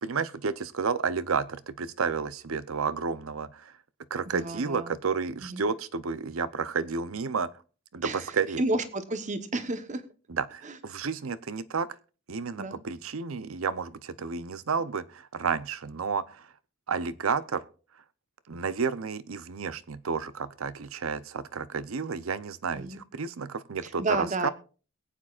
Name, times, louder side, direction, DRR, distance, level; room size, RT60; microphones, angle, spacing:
voice 1, 0.0-3.7 4.1-7.5 7.9-8.6 10.3-11.9 12.3-16.5 16.9-17.6 18.5-24.5, right 5 dB, 90° right, 16 dB, 0.7 m, -31 dB
voice 2, 4.3-4.9 5.4-5.7 8.0-8.2 8.6-10.0 12.6-12.8 22.7-23.0 24.0-24.5, right 2 dB, 35° right, 10 dB, 1.1 m, -31 dB
22.0 x 8.6 x 2.4 m, 0.37 s
head